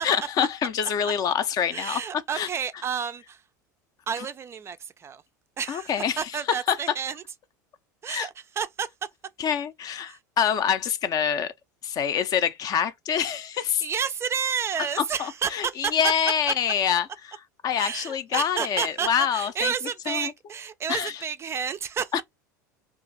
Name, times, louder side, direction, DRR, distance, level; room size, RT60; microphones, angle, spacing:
voice 1, 0.0-2.0 2.3-2.5 5.7-6.2 6.7-6.8 8.1-8.3 9.4-11.5 11.8-13.8 15.2-17.1 17.6-19.7 20.1-20.3 20.9-21.1 22.1-22.2, left 8 dB, 40° left, 0.5 m, -26 dB
voice 2, 1.7-3.4 4.1-5.2 5.6-7.2 8.0-8.9 10.1-10.2 13.6-16.1 17.8-22.1, right 7 dB, 25° right, 0.3 m, -30 dB
2.5 x 2.4 x 3.8 m
hypercardioid pair, 80°, 10 cm